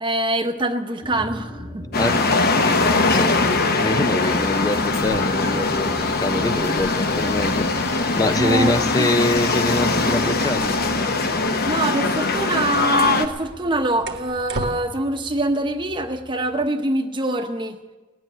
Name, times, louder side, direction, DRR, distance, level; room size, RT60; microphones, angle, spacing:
voice 1, 0.0-1.8 8.3-9.1 11.7-17.8, right 1 dB, 25° right, 4 dB, 0.9 m, -24 dB
sound 1, 1.0-16.7, equal, 10° right, 1.2 m, -38 dB
sound 2, 1.9-13.3, left 3 dB, 50° left, 1.0 m, -21 dB
voice 2, 2.5-7.7 8.2-10.8, left 2 dB, 20° left, 12 dB, 0.4 m, -25 dB
sound 3, 4.7-14.8, right 2 dB, 55° right, 1.3 m, -39 dB
18.0 x 7.7 x 9.9 m, 1.2 s
head